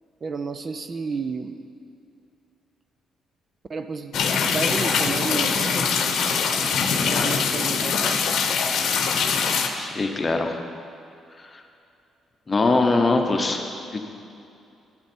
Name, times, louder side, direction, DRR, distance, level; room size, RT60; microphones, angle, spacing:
voice 1, 0.2-1.6 3.7-6.5 6.9-8.2, right 4 dB, 40° right, 9 dB, 0.5 m, -32 dB
sound 1, 4.1-9.7, left 6 dB, 75° left, 0.8 m, -23 dB
voice 2, 9.8-10.5 11.4-11.6 12.5-14.0, left 3 dB, 25° left, 4 dB, 0.9 m, -22 dB
9.6 x 8.6 x 4.5 m, 2.6 s
cardioid pair, 90°, 0 cm